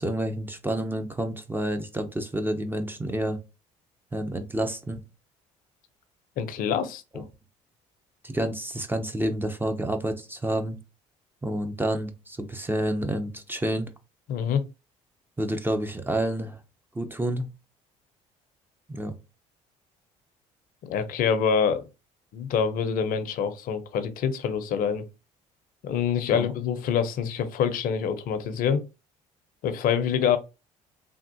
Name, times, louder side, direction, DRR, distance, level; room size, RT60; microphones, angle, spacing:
voice 1, 0.0-3.4 4.1-5.0 7.1-7.2 8.2-10.8 11.4-13.9 15.4-16.6 16.9-17.5 18.9-19.1 26.3-26.4, right 1 dB, 15° right, 0.6 m, -29 dB
voice 2, 6.4-7.2 14.3-14.7 20.8-21.9 22.3-25.0 25.8-28.8 29.6-30.4, left 7 dB, 60° left, 0.6 m, -26 dB
3.4 x 2.3 x 2.6 m
supercardioid pair, 70°, 16 cm